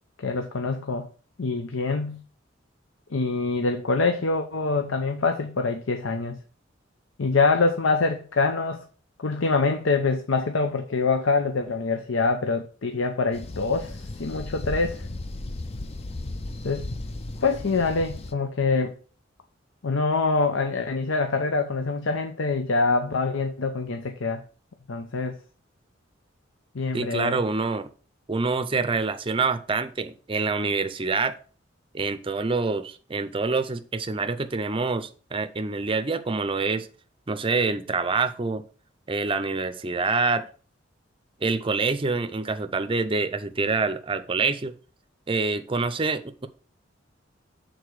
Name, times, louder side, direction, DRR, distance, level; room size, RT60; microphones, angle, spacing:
voice 1, 0.2-1.1 1.4-2.2 3.1-6.4 7.2-8.8 9.2-15.1 16.6-16.9 17.4-18.9 19.8-24.4 24.9-25.4 26.7-27.4, left 3 dB, 90° left, 0.7 m, -25 dB
sound 1, 13.3-18.3, left 2 dB, 30° left, 0.5 m, -35 dB
voice 2, 26.9-27.9 28.3-31.4 31.9-36.9 37.3-38.6 39.1-40.5 41.4-44.7 45.3-46.5, right 4 dB, 25° right, 0.5 m, -26 dB
6.7 x 3.9 x 6.3 m
head